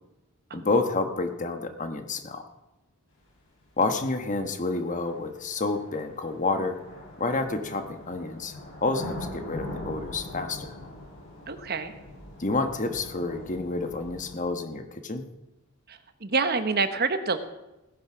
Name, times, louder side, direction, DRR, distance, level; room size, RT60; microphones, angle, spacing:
voice 1, 0.5-2.5 3.8-6.8 7.2-10.7 12.4-15.2, left 3 dB, 35° left, 7 dB, 1.2 m, -29 dB
sound 1, 3.8-3.9 4.9-14.4, left 1 dB, 60° left, 7.2 m, -42 dB
voice 2, 11.5-11.9 15.9-17.4, right 4 dB, 45° right, 9 dB, 1.0 m, -27 dB
17.0 x 10.5 x 6.1 m, 0.99 s
head